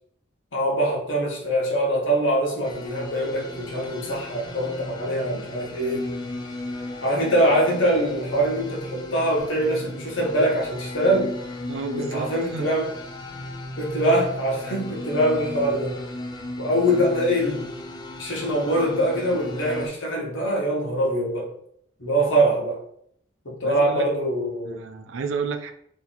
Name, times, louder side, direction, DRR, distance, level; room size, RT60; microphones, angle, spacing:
voice 1, 0.5-6.1 7.0-11.3 12.0-12.9 13.8-16.0 16.6-17.7 18.2-21.5 22.0-22.8 23.4-24.8, right 1 dB, 80° left, -1 dB, 1.1 m, -23 dB
sound 1, 2.6-19.9, left 1 dB, 20° left, 0.3 m, -36 dB
voice 2, 11.7-12.7 23.6-24.1 24.6-25.7, right 4 dB, 85° right, 7 dB, 0.4 m, -31 dB
2.8 x 2.7 x 4.1 m, 0.68 s
head